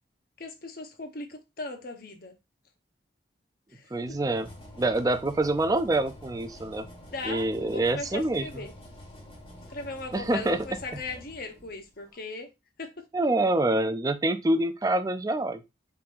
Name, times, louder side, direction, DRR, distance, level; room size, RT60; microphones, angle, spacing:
voice 1, 0.4-2.3 3.7-4.2 7.1-8.7 9.7-12.5 12.8-13.1, left 3 dB, 50° left, 0.8 m, -38 dB
voice 2, 3.9-4.5 4.8-6.9 7.2-8.6 10.1-10.7 10.9-11.0 13.1-15.6, right 2 dB, 20° right, 0.3 m, -26 dB
sound 1, 4.0-12.0, left 1 dB, 30° left, 1.4 m, -47 dB
4.7 x 3.8 x 2.4 m
head